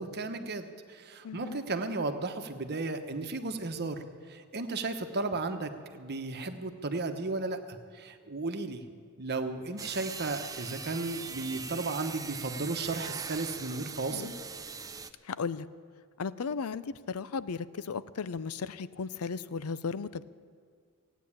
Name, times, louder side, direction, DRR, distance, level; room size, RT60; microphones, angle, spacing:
voice 1, 0.0-4.0 4.3-8.8 9.2-14.3, right 3 dB, 50° right, 7 dB, 1.1 m, -34 dB
voice 2, 1.2-1.6 14.1-14.3 15.2-15.7 16.2-20.2, left 5 dB, 70° left, 16 dB, 0.5 m, -35 dB
sound 1, 9.8-15.1, right 5 dB, 15° right, 0.5 m, -41 dB
16.5 x 9.3 x 8.6 m, 2.2 s
head